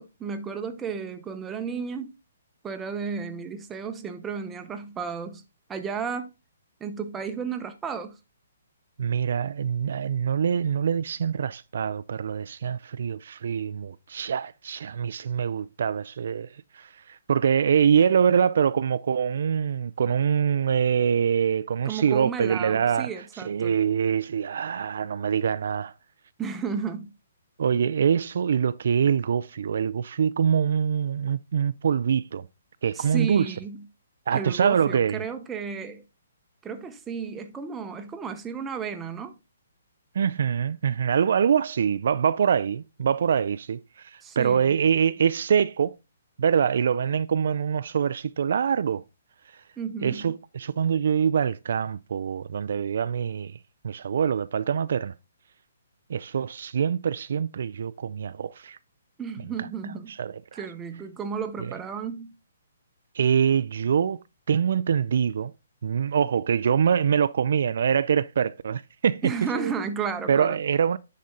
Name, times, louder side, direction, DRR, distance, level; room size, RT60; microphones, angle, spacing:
voice 1, 0.0-2.2 2.6-5.4 5.7-6.3 6.8-8.1 21.8-23.7 26.4-27.1 32.9-33.8 34.3-36.0 36.6-39.3 44.2-44.8 49.8-50.3 59.2-60.1 60.5-62.4 69.2-70.6, right 6 dB, 10° right, 0.8 m, -33 dB
voice 2, 9.0-16.5 16.7-23.1 23.4-25.9 27.6-32.5 32.8-33.5 34.3-35.2 40.1-46.0 46.4-49.0 50.0-53.6 53.8-55.1 56.1-58.8 60.1-60.7 63.1-64.2 64.5-65.5 65.8-69.7 70.3-71.0, right 7 dB, 60° right, 0.4 m, -24 dB
10.5 x 4.2 x 3.7 m
hypercardioid pair, 160°, 0 cm